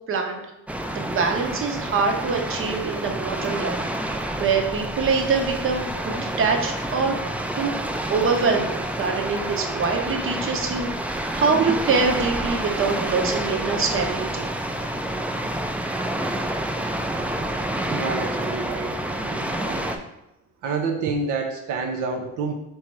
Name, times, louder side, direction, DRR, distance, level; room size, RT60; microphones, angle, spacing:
voice 1, 0.1-0.4 0.9-3.8 4.4-7.2 7.6-7.7 8.1-14.5, right 4 dB, 45° right, 3 dB, 0.8 m, -24 dB
sound 1, 0.7-20.0, right 1 dB, 5° right, 0.3 m, -28 dB
voice 2, 17.9-19.8 20.6-22.5, right 4 dB, 80° right, 2 dB, 0.6 m, -28 dB
3.6 x 3.1 x 4.5 m, 0.87 s
cardioid pair, 90°, 30 cm